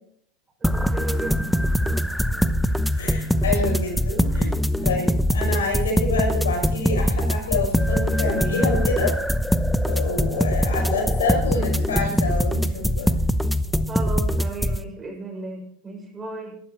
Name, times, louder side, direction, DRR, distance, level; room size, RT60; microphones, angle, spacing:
sound 1, 0.6-14.8, equal, ahead, 0.8 m, -22 dB
voice 1, 0.6-1.5 4.2-4.6 13.9-16.6, right 3 dB, 20° right, 1 dB, 6.1 m, -35 dB
voice 2, 3.0-4.5 4.8-9.2 9.9-13.1, left 3 dB, 90° left, 1 dB, 5.3 m, -27 dB
22.5 x 12.5 x 3.1 m, 0.66 s
hypercardioid pair, 90°, 0 cm